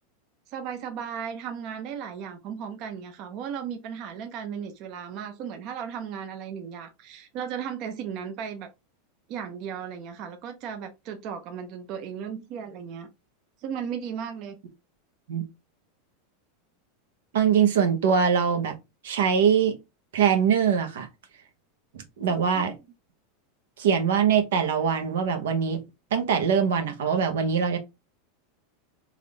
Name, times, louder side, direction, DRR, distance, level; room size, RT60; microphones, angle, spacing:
voice 1, 0.5-8.7 9.3-13.1 13.6-14.6, right 7 dB, 45° right, 0.6 m, -36 dB
voice 2, 17.3-18.7 19.0-19.8 20.1-21.1 21.9-22.7 23.8-25.8 26.1-27.8, right 7 dB, 90° right, 0.9 m, -23 dB
3.6 x 2.5 x 3.3 m
supercardioid pair, 145°, 0 cm